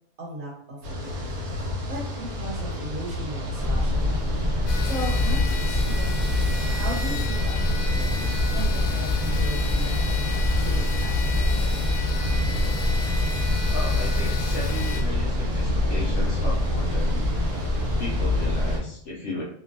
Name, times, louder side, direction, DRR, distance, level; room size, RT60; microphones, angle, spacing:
voice 1, 0.2-4.2 4.8-11.7, right 1 dB, 65° right, -3 dB, 1.3 m, -37 dB
sound 1, 0.8-18.8, left 1 dB, 85° right, 1.2 m, -32 dB
sound 2, 3.6-18.8, left 1 dB, 30° right, 0.9 m, -25 dB
sound 3, 4.7-15.0, left 4 dB, 85° left, 1.1 m, -35 dB
voice 2, 8.0-8.3 13.7-17.2 18.0-19.4, left 2 dB, 65° left, -3 dB, 0.8 m, -35 dB
2.8 x 2.5 x 2.5 m, 0.67 s
omnidirectional pair, 1.6 m